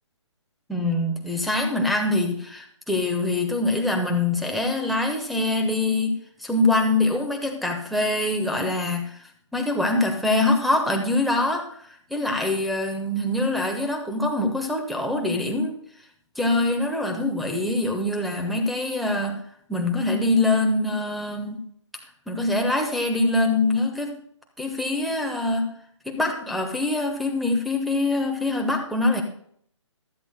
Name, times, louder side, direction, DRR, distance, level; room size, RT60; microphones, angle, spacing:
voice 1, 0.7-9.2 9.5-15.8 16.4-19.4 19.7-21.6 22.3-24.2 24.6-25.7 26.0-29.2, left 2 dB, ahead, 1 dB, 1.0 m, -24 dB
15.0 x 12.5 x 2.2 m, 0.64 s
figure-of-eight pair, 145°, 16 cm